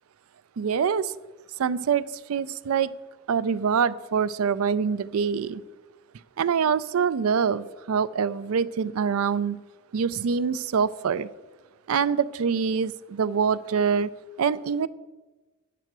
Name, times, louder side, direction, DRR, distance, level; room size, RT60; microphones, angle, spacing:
voice 1, 0.6-1.1 1.6-2.0 2.3-2.9 3.3-5.6 6.4-9.6 9.9-11.3 11.9-14.1 14.4-14.9, right 6 dB, 75° right, 17 dB, 0.4 m, -25 dB
9.1 x 7.6 x 6.0 m, 1.2 s
head